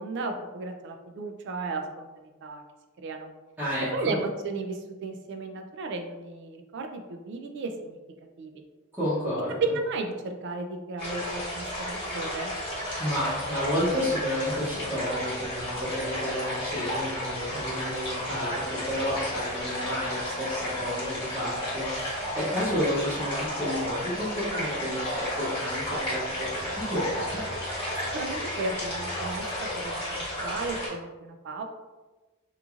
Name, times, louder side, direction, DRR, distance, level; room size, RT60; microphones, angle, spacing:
voice 1, 0.0-2.6 3.0-3.3 3.9-8.0 8.4-8.5 9.6-12.5 28.1-31.6, right 3 dB, 55° right, 5 dB, 0.3 m, -34 dB
voice 2, 3.6-4.1 8.9-9.7 13.0-27.4, equal, 10° right, -13 dB, 0.7 m, -31 dB
sound 1, 11.0-30.9, left 1 dB, 25° left, 1.2 m, -33 dB
2.9 x 2.5 x 2.4 m, 1.2 s
head